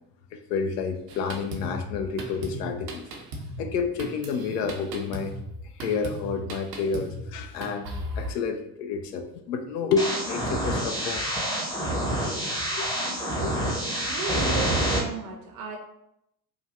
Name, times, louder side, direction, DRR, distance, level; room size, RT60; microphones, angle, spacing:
voice 1, 0.3-3.0 3.6-5.3 5.6-7.9 8.2-11.3 12.7-12.9 13.4-13.6, left 5 dB, 70° left, 6 dB, 0.5 m, -29 dB
Drum kit, 1.1-8.3, equal, 75° right, 0.8 m, -37 dB
sound 1, 10.0-15.0, right 1 dB, 10° left, 0.7 m, -27 dB
voice 2, 13.9-15.8, right 5 dB, 40° right, 1 dB, 0.6 m, -35 dB
3.2 x 2.2 x 2.5 m, 0.78 s
figure-of-eight pair, 75°, 50 cm